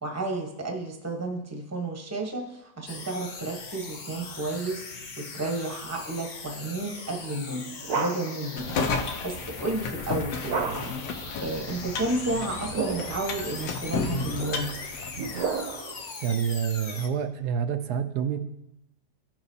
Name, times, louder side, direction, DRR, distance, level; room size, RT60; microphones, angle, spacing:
voice 1, 0.0-4.8 5.2-7.7 7.9-14.7, right 2 dB, 10° right, 2 dB, 0.9 m, -32 dB
sound 1, 2.9-17.1, left 4 dB, 50° left, 0.5 m, -40 dB
sound 2, 7.3-8.5 10.5-11.1 12.5-13.3 14.1-16.0, right 5 dB, 60° right, 1.2 m, -32 dB
sound 3, 8.6-15.8, left 4 dB, 80° left, 1.3 m, -33 dB
voice 2, 16.2-18.4, right 8 dB, 80° right, 8 dB, 1.1 m, -27 dB
16.0 x 5.9 x 2.7 m, 0.91 s
omnidirectional pair, 1.7 m